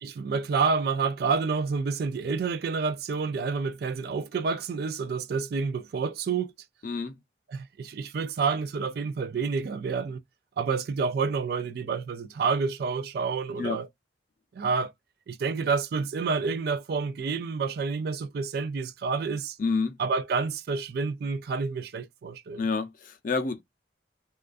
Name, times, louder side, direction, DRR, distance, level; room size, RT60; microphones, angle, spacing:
voice 1, 0.0-6.5 7.5-10.2 10.6-13.9 14.5-14.9 15.3-19.6 20.0-22.6, right 5 dB, 55° right, 0.3 m, -29 dB
voice 2, 6.8-7.1 13.6-13.8 19.6-20.0 22.6-23.6, left 4 dB, 45° left, 0.5 m, -28 dB
2.4 x 2.3 x 2.3 m
head